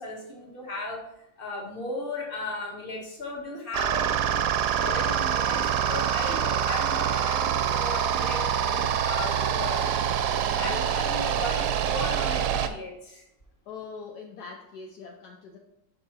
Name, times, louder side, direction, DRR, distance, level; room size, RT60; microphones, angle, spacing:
voice 1, 0.0-4.4 4.7-9.8 10.6-13.3, left 2 dB, 30° left, -2 dB, 1.7 m, -36 dB
sound 1, 3.7-12.7, right 9 dB, 75° right, 1.0 m, -26 dB
voice 2, 13.7-15.6, left 5 dB, 70° left, 1 dB, 1.2 m, -41 dB
5.4 x 5.3 x 4.6 m, 0.84 s
omnidirectional pair, 1.9 m